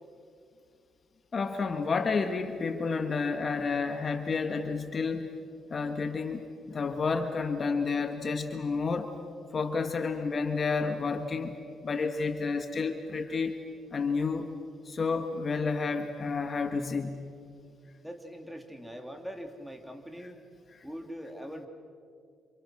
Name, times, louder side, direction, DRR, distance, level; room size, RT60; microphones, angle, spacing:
voice 1, 1.3-5.3 5.7-9.2 9.5-11.6 11.8-13.6 13.9-14.5 14.9-17.2, left 4 dB, 40° left, 7 dB, 1.7 m, -30 dB
voice 2, 18.0-20.4 20.8-21.7, equal, ahead, 4 dB, 3.0 m, -42 dB
29.5 x 27.5 x 6.2 m, 2.4 s
cardioid pair, 90°, 0 cm